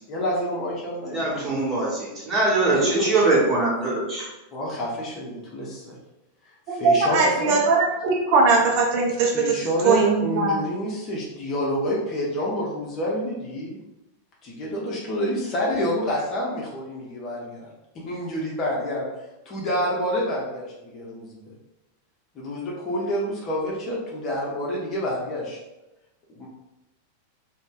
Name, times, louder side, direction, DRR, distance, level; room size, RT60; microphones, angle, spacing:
voice 1, 0.1-1.5 2.7-3.3 4.5-6.0 6.7-7.6 9.3-13.8 14.4-17.7 18.1-19.1 19.5-21.5 22.3-25.6 26.3-26.5, equal, 35° left, -4 dB, 0.8 m, -28 dB
voice 2, 1.1-4.3, right 2 dB, 25° right, -6 dB, 1.3 m, -22 dB
voice 3, 6.7-9.5 9.8-10.6, right 4 dB, 45° right, 0 dB, 0.6 m, -20 dB
2.6 x 2.3 x 3.7 m, 0.95 s
figure-of-eight pair, 90°, 0 cm